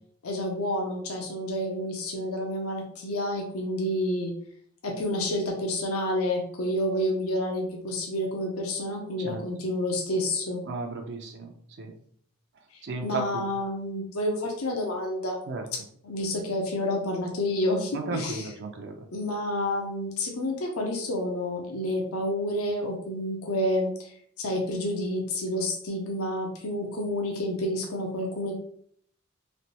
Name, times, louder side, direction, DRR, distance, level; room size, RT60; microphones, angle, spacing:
voice 1, 0.2-4.3 4.8-10.6 12.7-15.4 16.0-18.5 19.1-28.5, left 1 dB, 75° left, 0 dB, 0.7 m, -29 dB
voice 2, 10.7-11.5 11.8-11.9 12.8-13.2 15.5-15.7 17.9-19.1, right 3 dB, 55° right, 3 dB, 0.5 m, -34 dB
3.2 x 3.0 x 2.8 m, 0.63 s
head